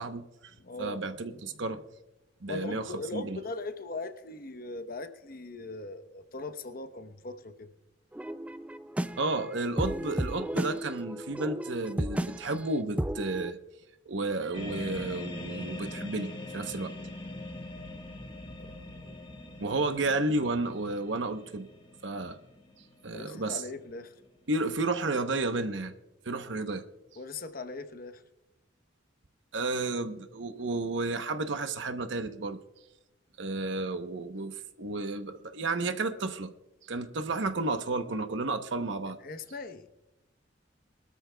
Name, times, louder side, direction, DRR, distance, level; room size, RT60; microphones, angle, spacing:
voice 1, 0.0-1.8 2.4-3.4 9.2-13.6 14.1-16.9 19.6-21.7 22.0-22.4 23.0-23.6 24.5-25.9 26.2-26.8 29.5-32.6 33.4-36.5 36.8-39.2, right 2 dB, 70° right, 8 dB, 0.9 m, -32 dB
voice 2, 0.6-1.0 1.5-1.6 2.5-7.7 18.6-19.2 23.1-24.1 27.2-28.2 39.2-39.9, left 2 dB, 50° left, 10 dB, 0.9 m, -40 dB
sound 1, 8.1-13.5, right 1 dB, 5° right, 0.3 m, -34 dB
sound 2, 14.5-24.5, left 1 dB, 25° left, 1.4 m, -43 dB
23.0 x 13.0 x 2.3 m, 0.94 s
head